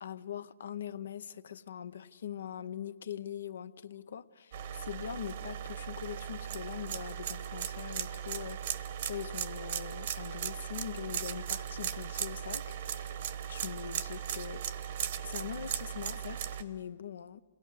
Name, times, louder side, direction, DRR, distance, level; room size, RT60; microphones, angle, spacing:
voice 1, 0.0-13.2 13.5-14.7 15.2-17.4, left 9 dB, 80° left, 15 dB, 0.7 m, -42 dB
sound 1, 4.5-16.6, right 9 dB, 60° right, 1.1 m, -38 dB
27.0 x 19.0 x 6.5 m, 1.5 s
hypercardioid pair, 140°, 0 cm